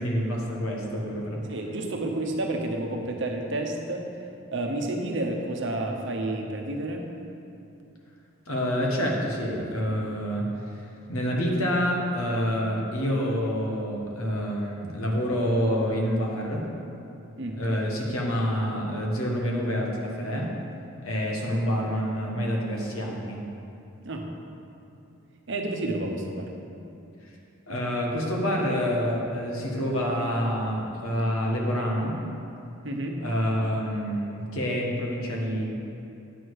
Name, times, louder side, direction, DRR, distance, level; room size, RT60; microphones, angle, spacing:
voice 1, 0.0-1.5 8.5-10.5 11.1-16.7 17.6-20.5 21.0-23.4 27.7-32.2 33.2-35.7, equal, 85° left, -1 dB, 1.4 m, -27 dB
voice 2, 1.5-4.0 4.5-7.1 17.4-17.6 24.0-24.2 25.5-26.5 32.8-33.2, right 2 dB, 60° right, 2 dB, 0.9 m, -30 dB
8.9 x 6.3 x 4.8 m, 2.7 s
head